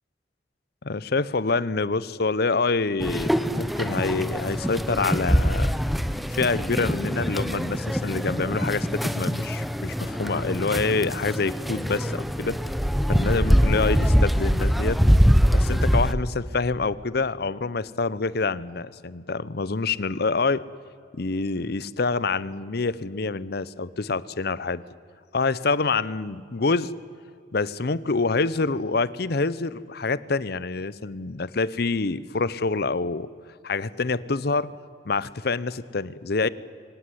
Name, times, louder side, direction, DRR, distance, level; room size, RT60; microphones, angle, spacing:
voice 1, 0.8-5.7 6.3-12.6 13.1-15.0 15.5-20.6 21.1-24.8 25.3-26.9 27.5-33.3 33.6-34.7 35.0-36.5, left 3 dB, 60° left, 19 dB, 0.8 m, -26 dB
sound 1, 3.0-16.1, equal, ahead, 0.9 m, -23 dB
24.5 x 17.5 x 10.0 m, 2.4 s
head